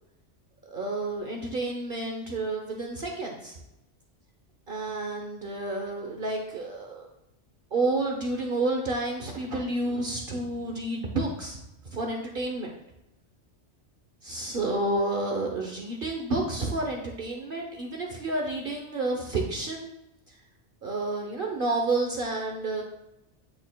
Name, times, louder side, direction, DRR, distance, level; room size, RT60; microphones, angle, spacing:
voice 1, 0.6-3.6 4.7-7.1 7.7-11.6 11.9-12.7 14.2-19.9 20.3-20.4 20.8-22.8, right 2 dB, 50° right, 1 dB, 0.9 m, -30 dB
8.3 x 6.5 x 2.2 m, 0.89 s
omnidirectional pair, 1.2 m